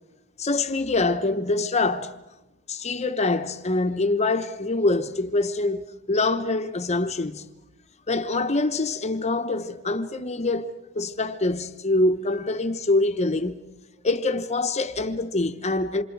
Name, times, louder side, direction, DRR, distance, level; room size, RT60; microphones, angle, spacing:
voice 1, 0.4-2.1 2.7-5.8 6.1-7.4 8.1-13.6 14.0-16.0, left 2 dB, 30° left, 0.9 m, -25 dB
28.5 x 27.0 x 4.7 m
head